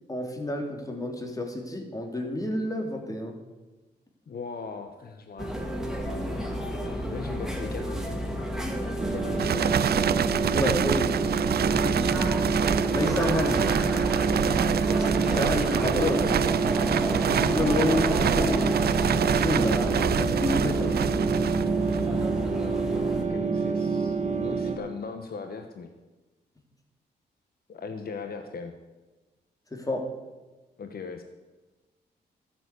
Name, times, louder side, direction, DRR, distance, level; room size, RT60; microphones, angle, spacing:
voice 1, 0.1-3.4 10.5-11.2 12.9-13.8 15.3-16.5 17.4-18.7 19.4-21.0 29.7-30.1, left 1 dB, 20° left, 2 dB, 3.1 m, -29 dB
voice 2, 4.3-5.5 5.9-6.5 7.1-8.0 9.1-9.8 11.7-12.4 23.2-25.9 27.7-28.7 30.8-31.2, left 4 dB, 55° left, 6 dB, 1.3 m, -38 dB
sound 1, 5.4-23.2, equal, 5° right, 2.4 m, -31 dB
sound 2, 9.0-24.8, right 4 dB, 40° right, 1.9 m, -27 dB
sound 3, 9.4-22.2, right 9 dB, 60° right, 0.5 m, -28 dB
13.0 x 7.6 x 8.3 m, 1.2 s
supercardioid pair, 55°, 19 cm